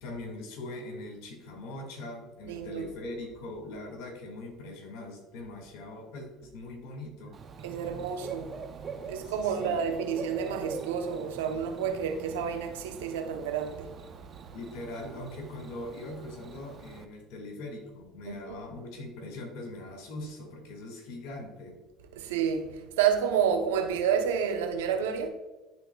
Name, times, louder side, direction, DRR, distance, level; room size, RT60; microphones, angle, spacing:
voice 1, 0.0-7.4 9.3-10.0 14.5-21.8, left 2 dB, 70° left, 1.9 m, -41 dB
voice 2, 2.4-2.9 7.6-14.1 14.4-14.5 18.3-18.6 22.1-25.3, right 7 dB, 85° right, 0.7 m, -30 dB
Bird / Cricket, 7.3-17.0, right 6 dB, 40° right, 0.6 m, -44 dB
11.0 x 3.7 x 2.3 m
hypercardioid pair, 75°, 0 cm